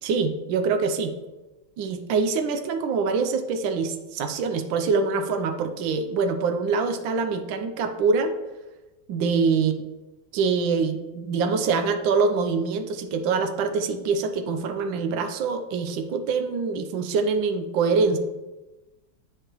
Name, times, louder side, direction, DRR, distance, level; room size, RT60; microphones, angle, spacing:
voice 1, 0.0-1.1 1.8-8.3 9.1-9.7 10.3-18.2, right 4 dB, 80° right, 7 dB, 1.4 m, -24 dB
8.6 x 6.5 x 3.0 m, 1.1 s
omnidirectional pair, 2.1 m